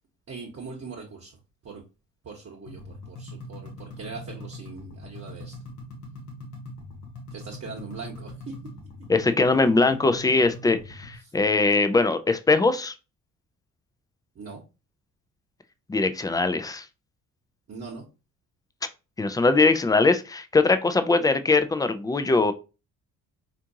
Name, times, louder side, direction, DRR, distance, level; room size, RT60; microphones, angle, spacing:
voice 1, 0.3-1.4 1.6-1.8 2.2-5.6 7.3-8.5 14.3-14.6 17.7-18.0, right 4 dB, 30° right, -1 dB, 1.1 m, -40 dB
sound 1, 2.7-11.2, left 1 dB, 85° left, 1.0 m, -41 dB
voice 2, 9.1-12.9 15.9-16.9 19.2-22.5, left 3 dB, 10° left, 10 dB, 0.3 m, -21 dB
4.4 x 2.6 x 2.6 m, 0.29 s
figure-of-eight pair, 45°, 44 cm